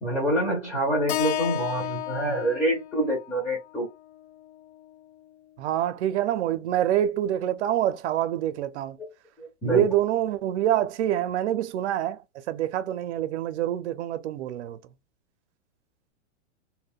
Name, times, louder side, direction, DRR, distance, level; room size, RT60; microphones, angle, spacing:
voice 1, 0.0-3.9 9.4-9.8, right 1 dB, 5° left, 0.6 m, -26 dB
Keyboard (musical), 1.1-5.3, left 13 dB, 70° left, 0.5 m, -34 dB
voice 2, 5.6-9.0 9.6-12.2 12.5-14.8, right 11 dB, 70° right, 0.6 m, -26 dB
2.2 x 2.1 x 3.5 m
hypercardioid pair, 150°, 36 cm